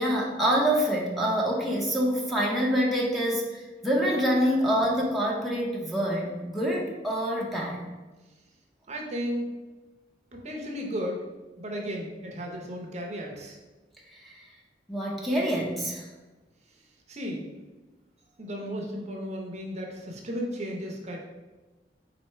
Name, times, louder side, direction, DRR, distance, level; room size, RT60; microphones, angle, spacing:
voice 1, 0.0-7.8 14.1-14.4 14.9-16.1, equal, ahead, -3 dB, 0.7 m, -26 dB
voice 2, 8.9-9.5 10.3-11.2 11.6-13.6 17.1-17.6 18.4-21.2, equal, 40° right, 0 dB, 0.7 m, -34 dB
4.3 x 2.7 x 4.4 m, 1.2 s
head